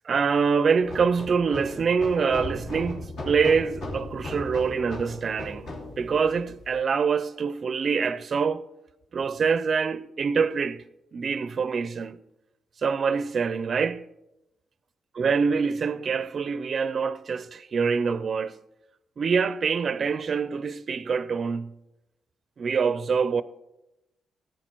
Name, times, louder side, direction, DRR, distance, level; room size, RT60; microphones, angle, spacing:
voice 1, 0.0-5.7 6.0-8.7 9.1-10.8 11.1-12.2 12.8-14.1 15.2-18.6 19.2-21.7 22.6-23.4, right 5 dB, 45° right, 0.4 m, -25 dB
sound 1, 0.8-6.8, left 2 dB, 75° left, 3.0 m, -37 dB
14.0 x 9.3 x 4.4 m
cardioid pair, 100°, 0 cm